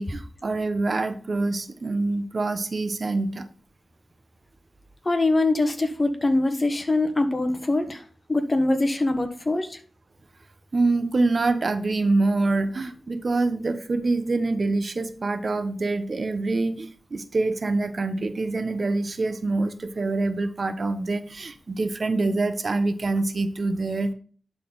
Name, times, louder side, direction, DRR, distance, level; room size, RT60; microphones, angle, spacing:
voice 1, 0.0-3.4 10.7-24.1, right 3 dB, 55° right, 10 dB, 1.0 m, -25 dB
voice 2, 5.0-8.0 8.3-9.8, left 2 dB, 35° left, 7 dB, 1.4 m, -23 dB
11.0 x 4.2 x 4.0 m, 0.42 s
cardioid pair, 45°, 0 cm